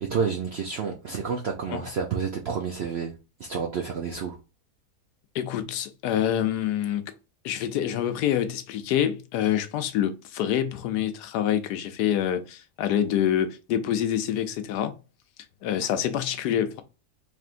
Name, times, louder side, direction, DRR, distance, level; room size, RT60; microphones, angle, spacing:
voice 1, 0.0-3.1 3.4-4.4, right 6 dB, 70° right, 0.6 m, -29 dB
voice 2, 5.3-7.1 7.4-15.0 15.6-16.8, left 10 dB, 80° left, 1.1 m, -26 dB
4.3 x 3.4 x 2.5 m
omnidirectional pair, 1.8 m